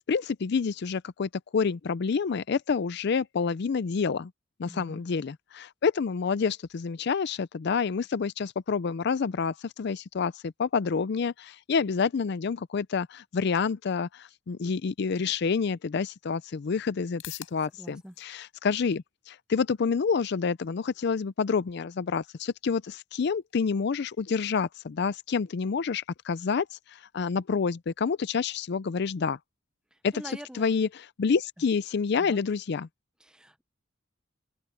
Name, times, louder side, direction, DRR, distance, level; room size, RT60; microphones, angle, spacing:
voice 1, 0.1-4.3 4.6-26.7 26.9-29.4 30.0-30.1 30.5-32.9, left 5 dB, 55° left, 0.4 m, -28 dB
voice 2, 4.6-5.0 17.8-18.1 29.9-30.8 32.2-32.4 33.2-33.6, equal, 5° right, 0.7 m, -45 dB
sound 1, 16.6-32.7, left 12 dB, 85° left, 4.3 m, -56 dB
open air
head